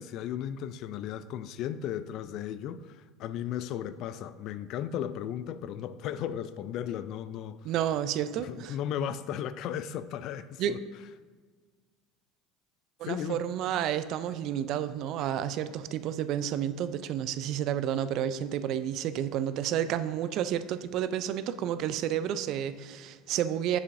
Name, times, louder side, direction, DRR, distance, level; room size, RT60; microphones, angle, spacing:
voice 1, 0.0-7.7 8.4-10.8 13.0-13.4, left 9 dB, 60° left, 0.3 m, -35 dB
voice 2, 7.6-8.8 10.6-10.8 13.0-23.8, right 10 dB, 55° right, 0.3 m, -30 dB
7.0 x 6.8 x 2.6 m
supercardioid pair, 100°, 0 cm